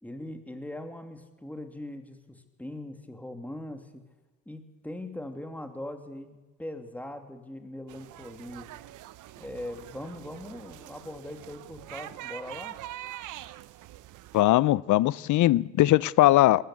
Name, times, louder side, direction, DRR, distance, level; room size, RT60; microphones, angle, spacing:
voice 1, 0.0-4.0 4.5-8.7 9.4-12.8, left 1 dB, 5° left, 6 dB, 2.8 m, -40 dB
sound 1, 7.9-14.4, right 15 dB, 85° right, 0.8 m, -44 dB
voice 2, 14.3-16.6, left 15 dB, 75° left, 22 dB, 0.6 m, -20 dB
20.5 x 18.0 x 8.5 m, 1.2 s
cardioid pair, 90°, 30 cm